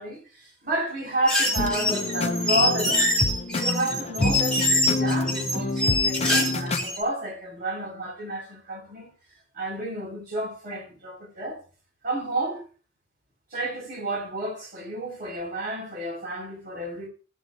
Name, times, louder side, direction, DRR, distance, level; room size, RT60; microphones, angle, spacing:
voice 1, 0.0-3.1 3.5-9.1 9.5-11.6 12.0-12.6 13.5-17.1, right 1 dB, 50° right, 5.2 m, -31 dB
sound 1, 1.3-7.0, left 1 dB, 5° left, 3.1 m, -24 dB
sound 2, 1.5-6.9, left 2 dB, 35° left, 0.6 m, -28 dB
16.0 x 7.4 x 2.7 m
head